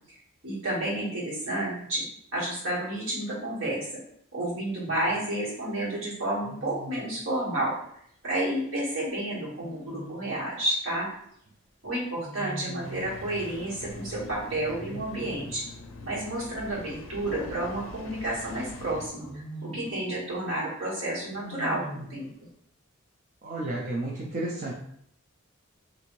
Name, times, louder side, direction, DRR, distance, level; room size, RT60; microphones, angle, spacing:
voice 1, 0.4-2.0 2.3-3.9 4.3-7.7 8.2-11.1 11.8-15.6 16.0-22.3, right 1 dB, 70° right, -7 dB, 1.5 m, -31 dB
Wild animals, 4.8-5.2 6.4-7.1 9.5-10.4 12.2-13.3 14.7-15.7 17.2-18.3 19.1-20.0 21.3-22.3, right 1 dB, 20° right, 0.8 m, -42 dB
Engine starting, 12.8-19.1, left 3 dB, 65° left, 0.4 m, -43 dB
voice 2, 23.4-24.7, right 2 dB, 35° right, -3 dB, 0.4 m, -32 dB
3.4 x 2.6 x 3.1 m, 0.70 s
head